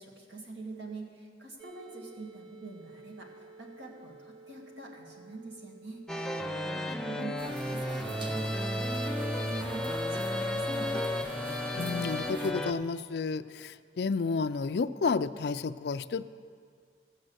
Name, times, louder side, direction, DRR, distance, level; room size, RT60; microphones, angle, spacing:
voice 1, 0.0-3.3 3.6-6.0 6.7-11.1, right 3 dB, 85° right, -1 dB, 2.2 m, -45 dB
sound 1, 1.6-13.3, right 4 dB, 65° right, 1.0 m, -56 dB
sound 2, 6.1-12.7, left 1 dB, 5° left, 0.5 m, -33 dB
sound 3, 7.4-12.5, right 2 dB, 30° right, 0.8 m, -45 dB
voice 2, 11.7-16.2, left 4 dB, 65° left, 13 dB, 0.4 m, -31 dB
14.0 x 7.6 x 7.9 m, 2.1 s
head